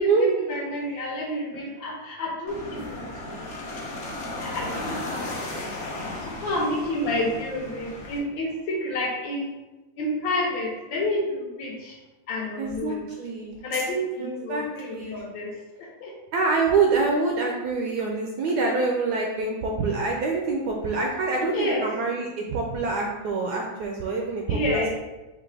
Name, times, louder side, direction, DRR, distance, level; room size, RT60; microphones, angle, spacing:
voice 1, 0.0-3.3 3.6-3.7 4.4-9.5 10.0-12.0 12.3-13.1 13.6-16.1 21.5-21.9 24.5-24.9, left 1 dB, 75° left, -3 dB, 1.5 m, -30 dB
sound 1, 2.5-8.2, left 2 dB, 55° left, 0.8 m, -35 dB
voice 2, 12.6-13.6 14.2-15.1 16.3-24.9, right 3 dB, 75° right, 0 dB, 0.9 m, -26 dB
5.1 x 2.8 x 3.2 m, 1.1 s
omnidirectional pair, 2.2 m